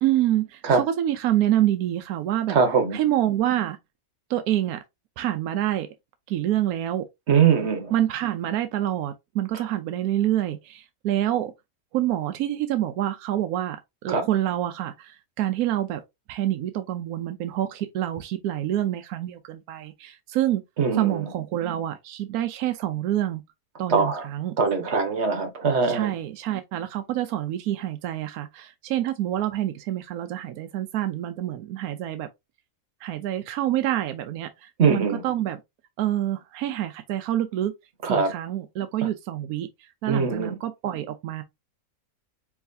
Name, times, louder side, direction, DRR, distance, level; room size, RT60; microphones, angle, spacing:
voice 1, 0.0-2.6 2.9-3.8 4.3-4.8 5.2-5.9 6.3-7.0 7.9-11.5 11.9-13.8 14.0-16.0 16.3-20.6 20.9-23.4 23.8-24.5 25.9-32.3 33.0-35.6 36.0-37.7 38.1-39.7 40.0-41.4, right 12 dB, 80° right, 1.1 m, -27 dB
voice 2, 2.5-3.0 7.3-7.9 14.1-14.3 20.8-21.3 23.9-24.3 24.6-26.1 34.8-35.2 38.0-38.3 40.1-40.5, right 5 dB, 50° right, 1.2 m, -22 dB
4.8 x 3.1 x 2.6 m
omnidirectional pair, 1.5 m